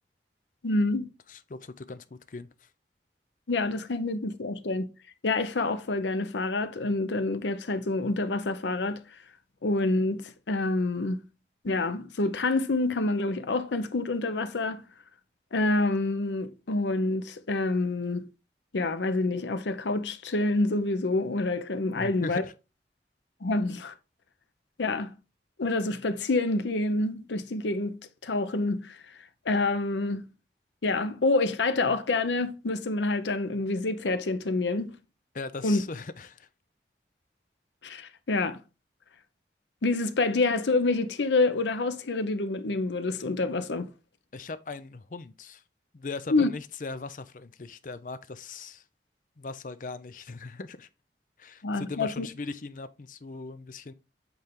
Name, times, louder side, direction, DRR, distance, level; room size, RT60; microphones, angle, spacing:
voice 1, 0.6-1.1 3.5-4.9 5.2-9.0 9.6-11.2 11.6-14.8 15.5-18.3 18.7-22.4 23.4-23.9 24.8-25.1 25.6-29.0 29.5-30.2 30.8-34.9 35.6-35.8 37.8-38.6 39.8-43.9 46.3-46.5 51.6-52.3, left 2 dB, 90° left, 0.7 m, -27 dB
voice 2, 1.3-2.5 22.0-22.5 35.3-36.5 44.3-45.6 45.9-48.8 49.4-50.9 51.4-53.9, left 3 dB, 45° left, 0.5 m, -39 dB
8.1 x 3.3 x 3.7 m
head